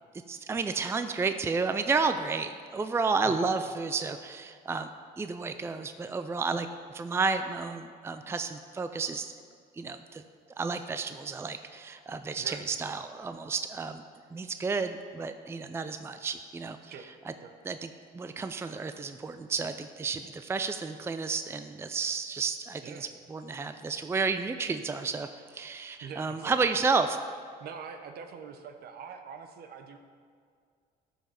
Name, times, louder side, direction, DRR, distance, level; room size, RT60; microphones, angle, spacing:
voice 1, 0.3-4.9 5.2-6.7 6.9-9.3 9.8-10.2 10.6-14.0 14.3-16.8 17.7-17.9 18.1-22.9 23.3-27.2, right 4 dB, 15° right, 9 dB, 0.4 m, -31 dB
voice 2, 26.0-26.6 27.6-30.0, right 6 dB, 65° right, 7 dB, 1.0 m, -44 dB
13.0 x 5.6 x 5.8 m, 2.1 s
cardioid pair, 110°, 17 cm